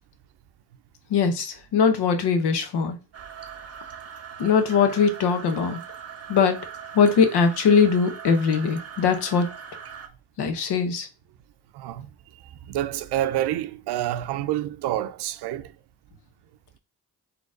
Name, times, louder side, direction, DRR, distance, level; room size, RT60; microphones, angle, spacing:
voice 1, 1.1-3.0 4.4-5.8 6.3-6.6 6.9-9.5 10.4-11.1, left 6 dB, 85° left, 0.8 m, -21 dB
sound 1, 3.1-10.1, right 7 dB, 40° right, 0.8 m, -41 dB
voice 2, 11.7-15.7, right 13 dB, 80° right, 0.5 m, -28 dB
3.9 x 2.9 x 3.6 m
supercardioid pair, 50°, 39 cm